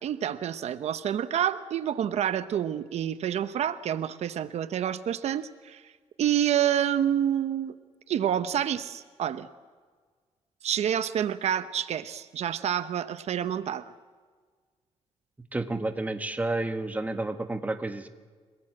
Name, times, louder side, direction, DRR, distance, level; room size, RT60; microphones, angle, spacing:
voice 1, 0.0-5.9 6.2-7.7 8.1-9.5 10.6-13.8, right 10 dB, 75° right, 12 dB, 0.8 m, -28 dB
voice 2, 15.5-18.1, right 2 dB, 15° right, 7 dB, 1.5 m, -30 dB
30.0 x 19.0 x 7.7 m, 1.5 s
cardioid pair, 125°, 11 cm